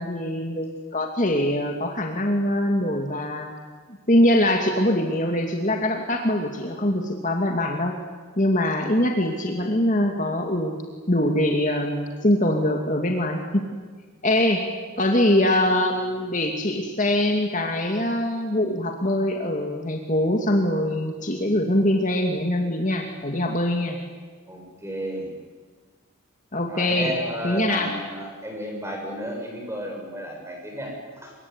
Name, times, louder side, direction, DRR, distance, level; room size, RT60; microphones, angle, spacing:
voice 1, 0.0-3.5 4.1-8.0 8.4-10.7 11.1-13.8 14.2-14.6 15.0-24.0 26.5-27.1 27.4-27.9, left 1 dB, 35° left, 2 dB, 2.4 m, -23 dB
voice 2, 24.5-25.3 26.7-31.3, equal, 10° right, 1 dB, 7.1 m, -33 dB
25.5 x 23.0 x 9.7 m, 1.5 s
head